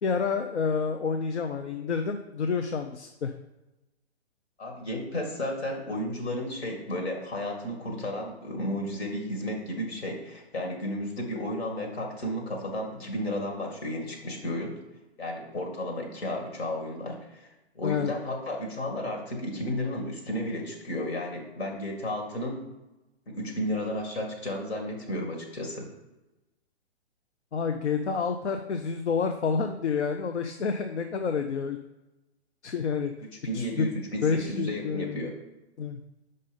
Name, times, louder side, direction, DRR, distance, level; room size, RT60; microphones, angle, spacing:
voice 1, 0.0-3.3 17.8-18.1 27.5-31.8 32.6-33.1 33.5-35.3 35.8-36.0, left 5 dB, 85° left, 6 dB, 0.7 m, -29 dB
voice 2, 4.6-14.8 15.2-17.5 17.7-22.6 23.3-25.9 33.2-35.3, left 1 dB, 70° left, 2 dB, 2.1 m, -33 dB
5.4 x 5.4 x 5.1 m, 1.0 s
hypercardioid pair, 130°, 33 cm